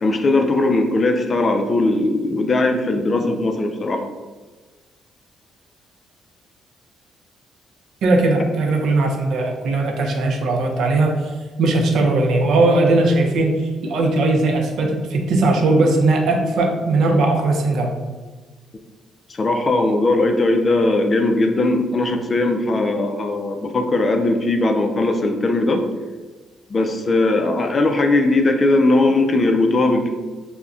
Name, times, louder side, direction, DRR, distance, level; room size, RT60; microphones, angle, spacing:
voice 1, 0.0-4.0 19.3-25.9 26.7-30.1, left 2 dB, 35° left, 5 dB, 0.3 m, -19 dB
voice 2, 8.0-18.0, right 2 dB, 75° right, 2 dB, 0.5 m, -18 dB
2.3 x 2.1 x 3.6 m, 1.3 s
cardioid pair, 90°, 0 cm